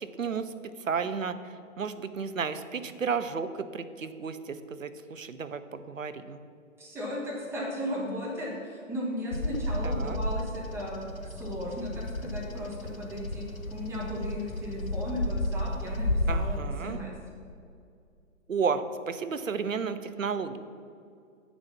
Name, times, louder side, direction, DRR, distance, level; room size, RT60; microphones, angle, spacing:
voice 1, 0.0-6.4 9.8-10.2 16.3-17.0 18.5-20.6, right 5 dB, 75° right, 11 dB, 0.7 m, -33 dB
voice 2, 6.8-13.4 13.7-16.6 16.8-17.1, left 1 dB, 5° right, -5 dB, 1.6 m, -36 dB
Bird vocalization bird call bird song, 9.3-16.6, left 1 dB, 90° left, 0.9 m, -32 dB
8.7 x 6.9 x 5.9 m, 2.4 s
figure-of-eight pair, 125°, 40 cm